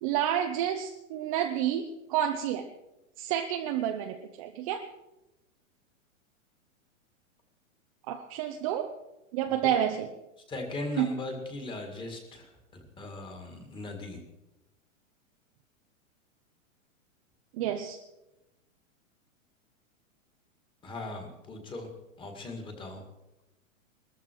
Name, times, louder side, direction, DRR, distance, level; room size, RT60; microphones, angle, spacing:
voice 1, 0.0-2.7 3.2-4.8 8.1-8.9 9.3-10.1 11.0-11.1 17.6-18.0, right 10 dB, 25° right, 5 dB, 0.6 m, -29 dB
voice 2, 10.5-14.2 20.8-21.9 22.2-23.0, left 2 dB, 10° left, 4 dB, 2.1 m, -39 dB
19.5 x 14.0 x 4.7 m, 0.95 s
hypercardioid pair, 160°, 41 cm